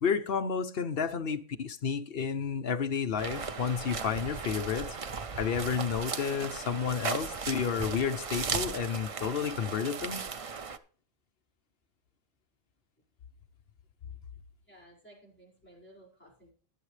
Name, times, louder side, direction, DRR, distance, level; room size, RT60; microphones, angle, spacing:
voice 1, 0.0-5.0 5.3-10.2, left 6 dB, 50° left, 0.8 m, -31 dB
sound 1, 3.2-10.8, right 5 dB, 65° right, 0.3 m, -36 dB
voice 2, 14.6-16.5, right 1 dB, 5° left, 5.1 m, -56 dB
21.5 x 7.3 x 3.3 m
omnidirectional pair, 1.4 m